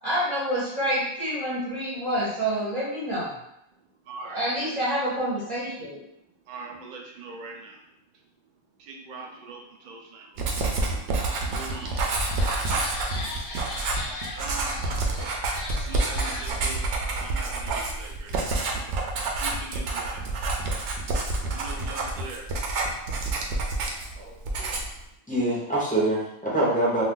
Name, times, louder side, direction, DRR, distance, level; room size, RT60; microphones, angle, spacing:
voice 1, 0.0-3.4 4.3-6.0, equal, 30° right, -9 dB, 0.7 m, -27 dB
voice 2, 3.8-4.4 6.2-7.9 8.8-10.6 11.5-12.5 13.8-14.1 14.3-15.3 15.9-18.8 19.4-20.3 21.5-22.5, right 4 dB, 85° right, 0 dB, 0.4 m, -42 dB
Writing, 10.4-24.2 24.4-25.0, right 2 dB, 65° right, 0.8 m, -28 dB
sound 1, 10.7-10.8 11.2-16.5, left 2 dB, 60° left, 0.8 m, -38 dB
voice 3, 25.3-27.0, right 1 dB, 10° left, -8 dB, 0.4 m, -25 dB
2.5 x 2.3 x 3.6 m, 0.81 s
omnidirectional pair, 1.5 m